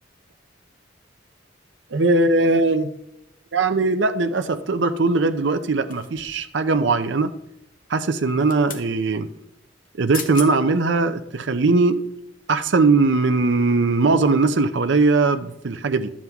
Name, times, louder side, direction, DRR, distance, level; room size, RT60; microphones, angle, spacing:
voice 1, 1.9-2.9 3.5-7.3 7.9-9.3 10.0-12.0 12.5-16.1, right 3 dB, 70° right, 9 dB, 0.6 m, -20 dB
sound 1, 5.9-6.5 8.2-8.9 9.9-10.0 10.1-10.5 11.1-11.2, left 6 dB, 45° left, 1.1 m, -35 dB
11.0 x 7.4 x 3.5 m, 0.82 s
head